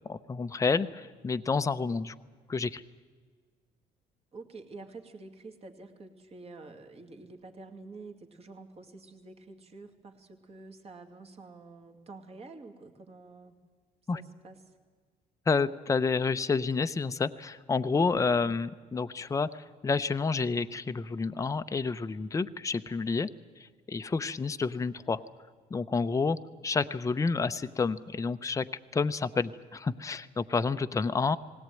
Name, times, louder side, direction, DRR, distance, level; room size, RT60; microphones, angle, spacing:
voice 1, 0.0-2.1 2.5-2.8 14.1-14.2 15.5-23.3 23.6-25.2 25.7-26.4 26.6-28.7 28.9-31.4, left 4 dB, 20° left, 10 dB, 0.7 m, -29 dB
voice 2, 4.3-13.6 14.1-14.8 18.2-18.6, right 3 dB, 35° right, 4 dB, 2.3 m, -48 dB
20.0 x 17.5 x 9.1 m, 1.6 s
cardioid pair, 110°, 17 cm